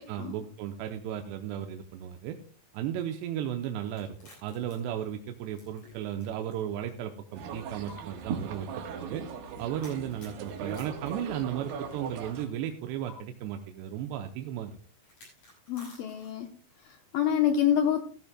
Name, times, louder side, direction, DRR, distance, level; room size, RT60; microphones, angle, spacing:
voice 1, 0.1-2.4 2.7-4.1 4.4-9.2 9.6-14.7, right 10 dB, 80° right, 5 dB, 2.8 m, -35 dB
sound 1, 3.9-6.6 6.9-7.0 7.9-8.0 9.8-11.9 13.1-13.2 15.0-16.5, left 2 dB, 40° left, 7.4 m, -53 dB
sound 2, 7.3-12.5, right 6 dB, 65° right, 2.9 m, -39 dB
voice 2, 15.7-16.5 16.8-18.0, left 9 dB, 80° left, 5 dB, 2.1 m, -27 dB
15.5 x 13.5 x 2.2 m, 0.42 s
omnidirectional pair, 5.0 m